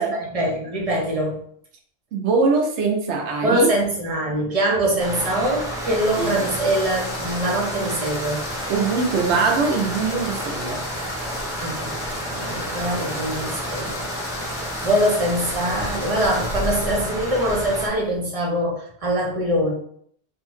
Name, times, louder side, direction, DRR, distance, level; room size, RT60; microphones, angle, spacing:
voice 1, 0.0-1.4 3.4-8.4 11.6-14.0 14.8-19.7, right 1 dB, 40° right, -1 dB, 0.6 m, -23 dB
voice 2, 2.1-3.7 6.2-6.4 8.7-10.8, right 4 dB, 85° right, 1 dB, 0.9 m, -22 dB
sound 1, 5.0-17.9, equal, 5° right, 0.3 m, -31 dB
sound 2, 5.5-17.2, left 3 dB, 85° left, 1.0 m, -38 dB
sound 3, 9.9-18.2, equal, 50° left, 0.9 m, -38 dB
2.7 x 2.1 x 3.0 m, 0.63 s
omnidirectional pair, 1.1 m